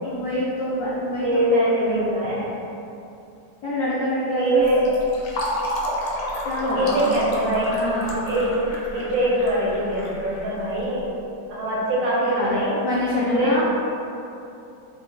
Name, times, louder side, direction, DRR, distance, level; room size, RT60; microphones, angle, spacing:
voice 1, 0.0-2.1 3.6-4.6 6.4-7.1 7.7-8.2 12.2-13.6, left 1 dB, 65° left, -8 dB, 0.8 m, -26 dB
voice 2, 1.2-2.6 4.4-4.9 6.7-8.0 8.2-11.1 11.5-12.8 13.1-13.6, right 1 dB, 85° right, -6 dB, 1.7 m, -23 dB
Fill (with liquid), 4.6-11.0, left 1 dB, 85° left, 1.3 m, -30 dB
4.5 x 2.2 x 3.8 m, 2.7 s
omnidirectional pair, 1.9 m